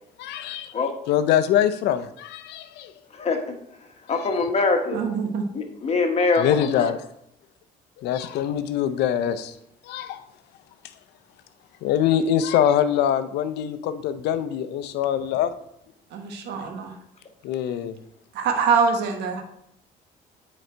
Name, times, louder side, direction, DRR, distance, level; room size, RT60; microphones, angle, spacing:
voice 1, 0.2-0.7 1.1-2.9 6.4-7.0 8.0-9.5 9.8-10.2 11.8-15.5 17.4-18.0, left 10 dB, 85° left, 0.7 m, -23 dB
voice 2, 3.1-3.4 4.1-5.0 5.5-6.9, left 3 dB, 40° left, 1.4 m, -23 dB
voice 3, 4.9-5.4 16.1-16.9 18.3-19.4, right 5 dB, 85° right, 1.3 m, -24 dB
9.3 x 4.2 x 4.5 m
cardioid pair, 110°, 17 cm